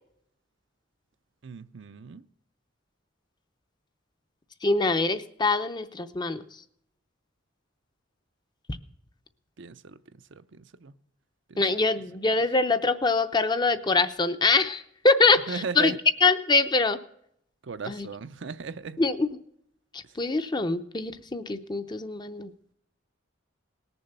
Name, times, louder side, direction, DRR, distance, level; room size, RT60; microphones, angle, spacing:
voice 1, 1.4-2.2 9.6-10.0 10.3-10.9 11.5-11.6 15.5-16.0 17.6-19.0, right 5 dB, 60° right, 0.6 m, -37 dB
voice 2, 4.6-6.4 11.6-15.9 16.2-17.0 17.9-18.1 19.0-19.3 19.9-22.5, left 3 dB, 20° left, 0.6 m, -24 dB
18.5 x 7.1 x 6.7 m
head